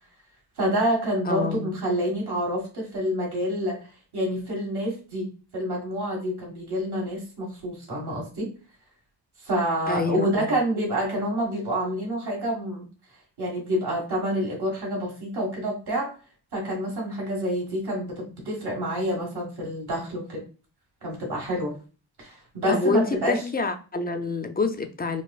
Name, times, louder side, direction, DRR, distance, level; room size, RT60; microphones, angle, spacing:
voice 1, 0.6-5.3 5.5-8.5 9.4-12.9 13.4-16.1 16.5-20.4 21.0-21.8 22.2-23.4, equal, 60° right, 1.6 m, -28 dB
voice 2, 1.3-1.7 9.9-10.5 22.7-25.2, left 4 dB, 25° left, 0.4 m, -27 dB
4.4 x 2.5 x 2.4 m
cardioid pair, 75°, 44 cm